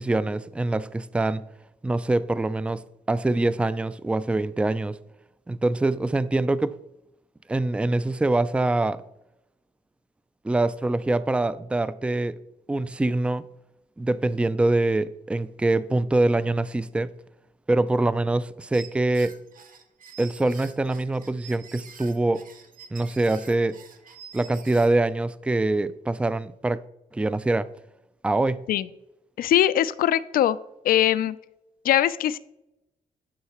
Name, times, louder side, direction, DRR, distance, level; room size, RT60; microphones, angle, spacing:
voice 1, 0.0-1.4 1.8-2.8 3.1-5.0 5.5-6.8 7.5-9.0 10.4-12.4 12.7-13.4 14.0-17.1 17.7-19.4 20.2-22.4 22.9-23.8 24.3-26.8 27.1-27.7 28.2-28.7, right 2 dB, 10° right, 0.3 m, -24 dB
sound 1, 18.7-25.1, right 6 dB, 70° right, 1.1 m, -47 dB
voice 2, 29.4-30.6 30.8-31.4 31.8-32.4, left 12 dB, 80° left, 0.4 m, -21 dB
11.5 x 5.6 x 2.9 m
cardioid pair, 90°, 15 cm